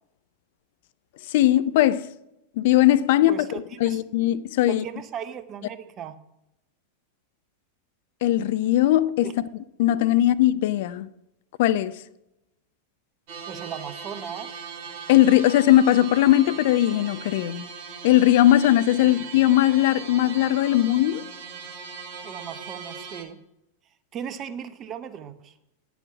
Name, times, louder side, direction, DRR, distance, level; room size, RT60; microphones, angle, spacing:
voice 1, 1.3-2.1 2.6-3.4 3.8-4.8 8.2-9.3 9.8-11.1 11.6-12.0 15.1-17.7 18.0-21.3, left 13 dB, 50° left, 0.4 m, -19 dB
voice 2, 3.3-4.0 4.7-6.2 9.2-9.3 13.5-14.6 19.0-19.2 22.2-23.4 24.1-25.5, right 8 dB, 30° right, 0.8 m, -37 dB
sound 1, 13.3-23.2, right 6 dB, 45° right, 1.4 m, -39 dB
9.7 x 7.1 x 5.9 m
figure-of-eight pair, 90°, 0 cm